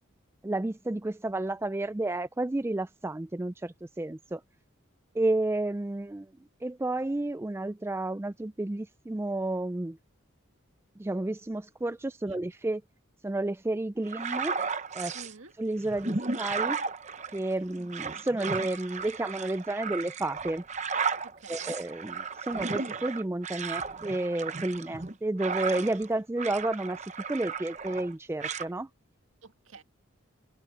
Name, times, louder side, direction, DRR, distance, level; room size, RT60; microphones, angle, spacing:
voice 1, 0.4-4.4 5.1-6.3 6.6-10.0 11.0-12.8 13.2-14.6 14.9-15.2 15.6-16.8 17.3-20.6 21.5-27.0 27.3-28.9, right 2 dB, 10° right, 0.3 m, -31 dB
sound 1, 14.1-15.3 15.8-26.1 26.4-28.1 28.4-28.7, right 5 dB, 35° right, 0.9 m, -34 dB
voice 2, 15.1-15.5 21.2-21.8 29.4-29.8, right 3 dB, 70° right, 2.0 m, -49 dB
head